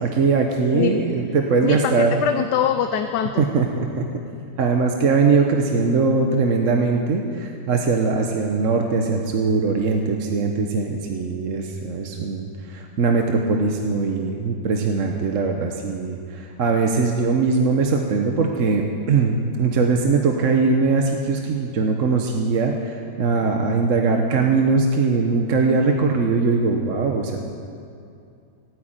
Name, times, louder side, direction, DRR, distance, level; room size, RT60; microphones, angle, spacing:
voice 1, 0.0-2.1 3.4-4.0 4.6-27.4, right 4 dB, 55° right, 2 dB, 1.3 m, -21 dB
voice 2, 1.6-3.5, left 9 dB, 80° left, 8 dB, 1.3 m, -23 dB
17.0 x 9.4 x 8.9 m, 2.6 s
omnidirectional pair, 1.8 m